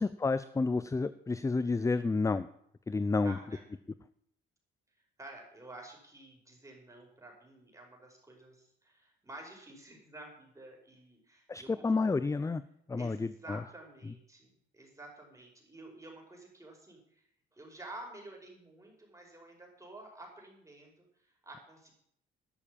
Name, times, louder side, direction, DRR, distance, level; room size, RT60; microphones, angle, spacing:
voice 1, 0.0-2.5 2.9-3.4 11.5-12.6 12.9-13.6, left 3 dB, 15° left, 15 dB, 0.5 m, -30 dB
voice 2, 3.2-3.6 5.2-11.9 13.0-17.2 17.5-21.9, right 2 dB, 15° right, 0 dB, 5.2 m, -51 dB
12.0 x 7.3 x 8.8 m, 0.72 s
cardioid pair, 90°, 20 cm